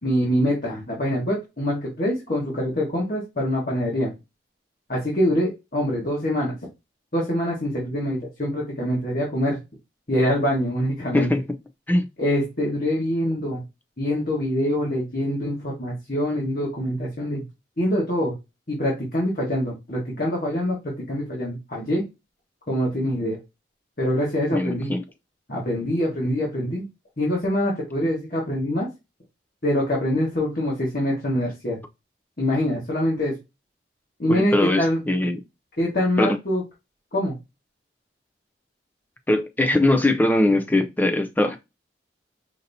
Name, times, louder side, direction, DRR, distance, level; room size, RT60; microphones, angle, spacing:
voice 1, 0.0-4.1 4.9-6.5 7.1-9.6 10.1-11.3 12.2-13.6 14.0-17.4 17.8-18.3 18.7-22.0 22.7-23.4 24.0-24.9 25.5-26.8 27.2-28.9 29.6-31.8 32.4-33.3 34.2-35.0 35.8-36.6 37.1-37.3, equal, 50° left, 1.4 m, -24 dB
voice 2, 24.5-25.0 34.3-35.4 36.2-36.4 39.3-41.6, left 1 dB, 10° left, 0.4 m, -21 dB
5.2 x 2.8 x 2.6 m
head